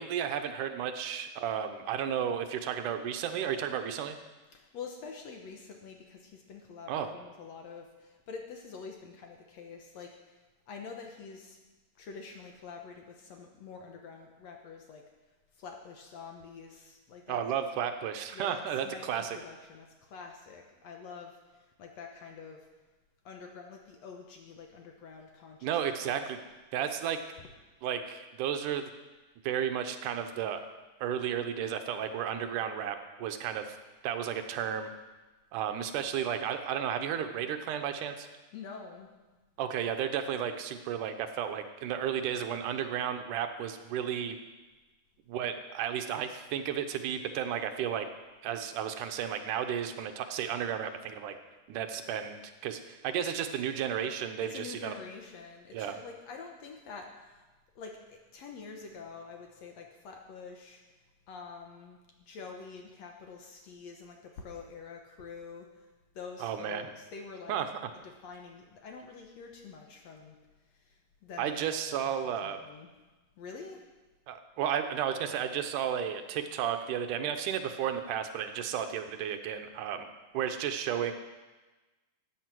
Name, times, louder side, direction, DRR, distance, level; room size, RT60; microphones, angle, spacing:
voice 1, 0.0-4.2 6.9-7.1 17.3-19.4 25.6-26.4 26.7-27.2 27.8-28.9 29.4-30.6 31.0-33.8 34.0-34.9 35.5-38.3 39.6-44.4 45.3-48.1 48.4-51.4 51.7-54.9 55.7-56.0 66.4-66.9 67.5-67.9 71.4-72.6 74.3-80.1 80.3-81.1, right 9 dB, 75° right, 7 dB, 2.2 m, -33 dB
voice 2, 4.5-10.4 10.7-11.6 12.0-15.0 15.5-17.4 18.3-22.7 23.3-26.3 38.5-39.1 54.4-57.4 57.8-60.8 61.3-62.0 62.3-65.9 66.2-67.6 68.2-70.4 70.7-72.9 73.4-73.8, left 5 dB, 65° left, 3 dB, 1.9 m, -47 dB
14.0 x 8.8 x 6.0 m, 1.2 s
omnidirectional pair, 3.8 m